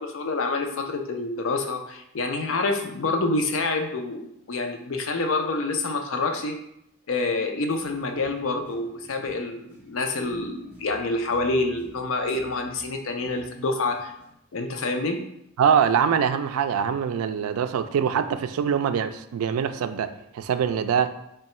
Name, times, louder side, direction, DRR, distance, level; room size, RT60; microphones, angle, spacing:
voice 1, 0.0-6.6 7.1-14.1 14.5-15.2, left 3 dB, 70° left, 4 dB, 0.5 m, -27 dB
sound 1, 7.8-14.4, left 1 dB, 10° right, 1.1 m, -51 dB
voice 2, 15.6-21.1, right 7 dB, 90° right, 10 dB, 0.3 m, -23 dB
3.7 x 2.2 x 4.2 m, 0.79 s
head